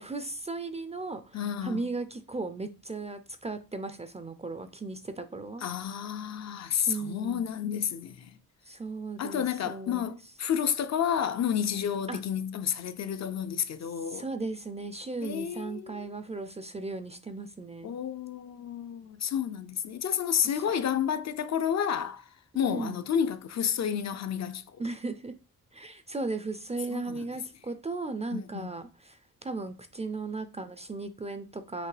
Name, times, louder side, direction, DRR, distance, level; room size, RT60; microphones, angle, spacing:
voice 1, 0.0-5.7 6.9-7.5 8.7-10.2 12.1-12.2 14.1-17.9 22.6-23.0 24.8-25.3 25.7-31.9, right 3 dB, 20° right, 0.3 m, -36 dB
voice 2, 1.3-1.8 5.6-8.4 9.2-14.2 15.2-16.1 17.8-22.2 22.5-24.6 26.9-27.3 28.3-28.7, left 8 dB, 50° left, 0.4 m, -30 dB
5.8 x 2.8 x 3.2 m
wide cardioid pair, 140°, 34 cm